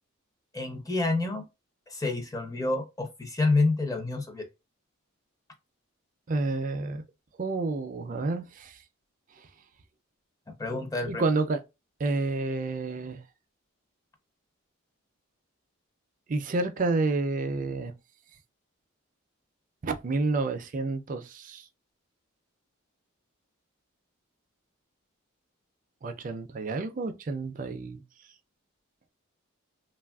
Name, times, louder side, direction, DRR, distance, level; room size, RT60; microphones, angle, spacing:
voice 1, 0.5-1.4 1.9-4.4 10.6-11.2, left 3 dB, 15° left, 0.5 m, -28 dB
voice 2, 6.3-7.0 7.4-8.8 11.1-11.6 12.0-13.2 16.3-17.9 19.8-21.7 26.0-28.0, right 3 dB, 40° right, 0.4 m, -29 dB
3.1 x 2.3 x 2.3 m
head